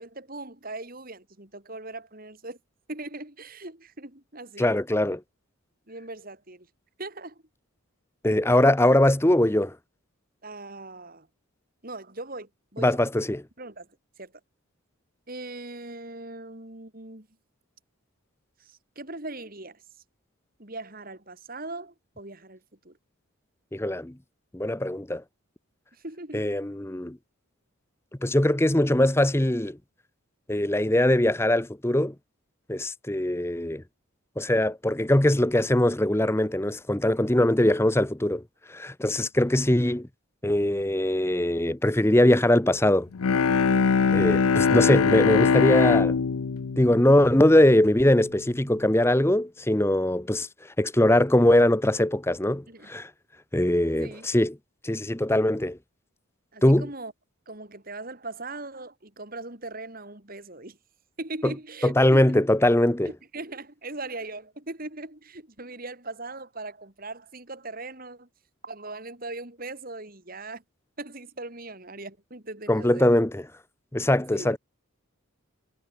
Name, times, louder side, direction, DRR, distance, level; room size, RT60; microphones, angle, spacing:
voice 1, 0.0-2.6 2.9-4.7 5.9-6.7 7.0-7.4 10.4-11.3 11.8-13.0 13.6-13.9 14.2-14.3 15.3-17.3 18.6-19.8 20.6-23.0 25.9-26.6 37.6-37.8 52.7-53.0 54.0-54.3 56.5-57.1 57.5-60.8 61.2-62.4 63.0-68.3 68.6-70.6 71.0-73.1 74.3-74.6, right 2 dB, 40° right, 3.1 m, -40 dB
voice 2, 4.6-5.2 8.2-9.8 12.8-13.4 23.7-24.1 24.5-25.2 26.3-27.2 28.2-29.8 30.5-32.1 32.7-33.8 34.4-38.4 38.7-40.1 40.4-43.1 44.1-46.2 46.8-50.5 50.8-53.1 53.5-54.6 54.8-55.8 56.6-56.9 61.4-61.5 61.8-63.1 72.7-73.4 73.9-74.6, left 1 dB, 10° left, 0.8 m, -21 dB
Bowed string instrument, 43.1-48.0, left 5 dB, 90° left, 0.6 m, -22 dB
head